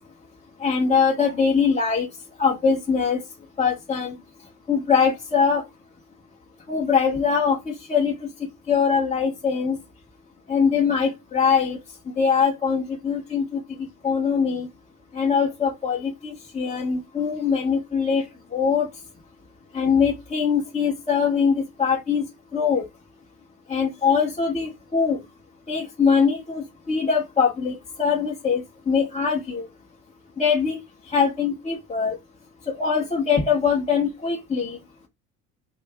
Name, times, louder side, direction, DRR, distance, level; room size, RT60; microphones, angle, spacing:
voice 1, 0.6-2.1 2.4-3.2 3.6-4.2 4.7-5.6 6.7-8.3 8.7-9.8 10.5-11.8 12.2-13.6 14.0-14.7 15.1-18.3 18.5-18.9 19.7-22.2 22.5-22.8 23.7-25.2 25.7-29.7 30.4-30.8 31.1-32.2 32.7-34.8, left 6 dB, 15° left, 0.8 m, -22 dB
2.6 x 2.3 x 3.5 m
figure-of-eight pair, 60°, 49 cm